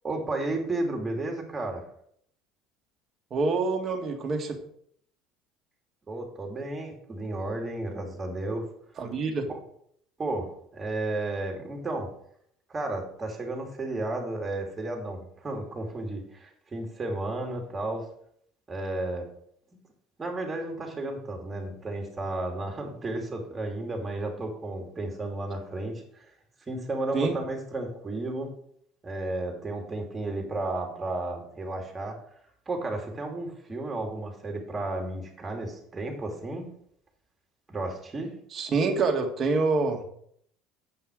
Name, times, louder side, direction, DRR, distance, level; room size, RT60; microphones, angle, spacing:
voice 1, 0.0-1.8 6.1-8.7 9.5-9.6 10.2-12.1 12.7-18.1 18.7-19.3 20.2-26.3 26.7-28.5 29.0-32.2 32.7-36.7 37.7-38.3, right 2 dB, 25° right, 2 dB, 2.8 m, -33 dB
voice 2, 3.3-4.6 9.0-9.5 27.1-27.4 38.5-40.0, right 4 dB, 40° right, 3 dB, 1.9 m, -26 dB
8.5 x 5.6 x 6.4 m, 0.68 s
supercardioid pair, 85°, 0 cm